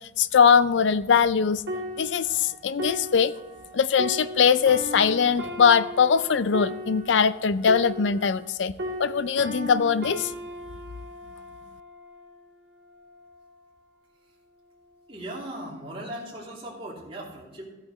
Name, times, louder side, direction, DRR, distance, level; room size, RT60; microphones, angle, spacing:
voice 1, 0.2-1.6 2.0-3.3 3.7-8.7 9.0-10.3, left 6 dB, 80° left, 15 dB, 0.4 m, -21 dB
sound 1, 1.7-8.5 8.8-12.4 13.0-13.2, equal, 60° right, 3.0 m, -36 dB
voice 2, 15.1-17.8, right 1 dB, 30° right, -4 dB, 2.9 m, -38 dB
14.0 x 8.7 x 3.1 m, 1.1 s
head